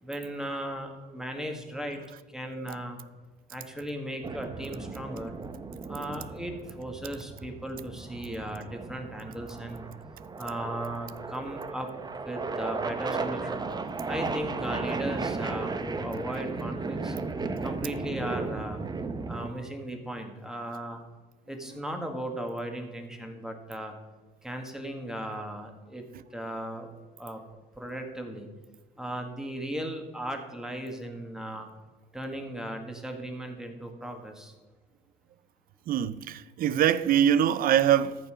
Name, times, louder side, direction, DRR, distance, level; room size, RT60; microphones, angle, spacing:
voice 1, 0.0-2.0 2.3-3.0 3.5-5.4 5.9-9.9 10.4-11.9 12.3-13.7 14.1-17.1 17.6-18.9 19.3-21.0 21.5-23.9 24.4-26.1 26.3-26.9 27.2-27.4 27.8-28.5 29.0-31.7 32.1-34.5, right 1 dB, 5° right, 1.7 m, -36 dB
sound 1, 4.2-19.5, right 4 dB, 25° right, 0.8 m, -35 dB
voice 2, 35.9-38.2, right 10 dB, 60° right, 0.6 m, -23 dB
14.0 x 5.6 x 5.1 m
cardioid pair, 110°, 17 cm